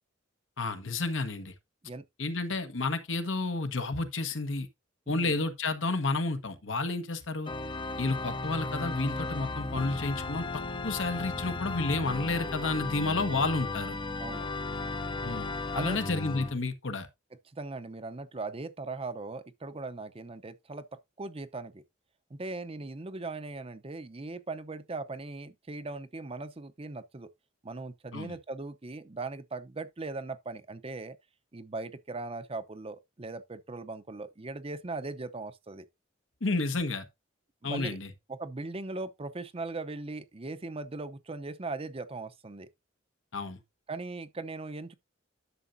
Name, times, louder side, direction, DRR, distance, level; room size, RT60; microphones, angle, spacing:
voice 1, 0.6-1.5 2.2-4.7 5.1-7.5 8.0-10.5 10.8-14.0 15.2-17.1 28.1-28.4 36.4-37.0 37.6-38.1 43.3-43.6, left 3 dB, 75° left, 1.4 m, -31 dB
voice 2, 5.1-5.4 14.2-14.5 15.4-15.5 15.7-16.0 17.5-20.9 21.2-21.8 22.3-27.3 27.6-31.2 31.5-35.9 37.6-38.0 38.3-42.7 43.9-45.0, right 3 dB, 30° right, 0.7 m, -39 dB
Organ, 7.5-16.6, left 3 dB, 25° left, 0.6 m, -35 dB
11.0 x 6.9 x 2.6 m
head